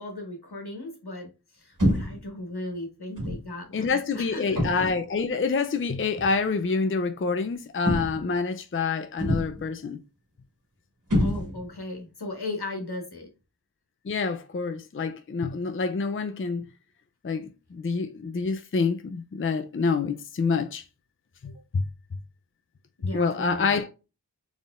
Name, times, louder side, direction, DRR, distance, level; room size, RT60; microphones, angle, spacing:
voice 1, 0.0-4.6 11.2-13.3 23.0-23.7, left 2 dB, 70° left, 1.5 m, -37 dB
sound 1, 1.8-2.3 3.2-3.5 4.5-5.0 6.2-6.4 7.8-8.3 9.2-9.7 11.1-11.8, equal, 50° right, 1.7 m, -26 dB
voice 2, 3.7-10.0 14.1-16.6 17.2-20.8 21.4-21.8 23.1-23.9, left 4 dB, 35° left, 0.5 m, -27 dB
4.1 x 3.5 x 2.4 m
wide cardioid pair, 45°, 39 cm